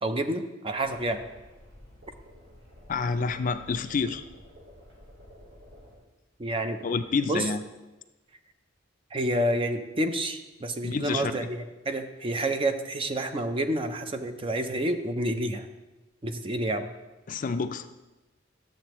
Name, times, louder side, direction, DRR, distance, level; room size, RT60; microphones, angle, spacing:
voice 1, 0.0-1.2 6.4-6.8 7.3-7.5 9.1-15.7 16.2-16.9, right 1 dB, 30° right, 7 dB, 0.5 m, -29 dB
sound 1, 0.8-6.0, equal, 70° right, 2.5 m, -51 dB
voice 2, 2.9-4.2 6.8-7.6 10.8-11.3 17.3-17.9, left 4 dB, 45° left, 10 dB, 0.4 m, -28 dB
11.5 x 7.7 x 3.0 m, 1.1 s
head